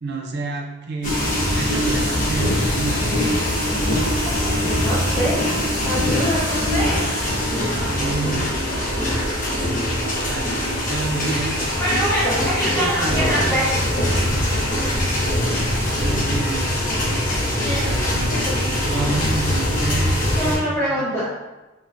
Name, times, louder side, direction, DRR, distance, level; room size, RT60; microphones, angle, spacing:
voice 1, 0.0-1.3 1.6-3.1 7.7-8.5 10.0-10.6 10.9-11.8 12.3-13.7 14.5-15.0 15.3-17.2 17.5-21.2, right 3 dB, 50° right, 2 dB, 0.5 m, -30 dB
sound 1, 1.0-20.6, left 1 dB, 35° left, 0.9 m, -22 dB
voice 2, 4.7-5.5 5.8-7.0 11.8-13.8 17.6-18.1 18.4-18.6 19.2-19.3 20.3-21.3, equal, 15° left, -11 dB, 1.2 m, -24 dB
3.4 x 3.0 x 2.5 m, 1.1 s
head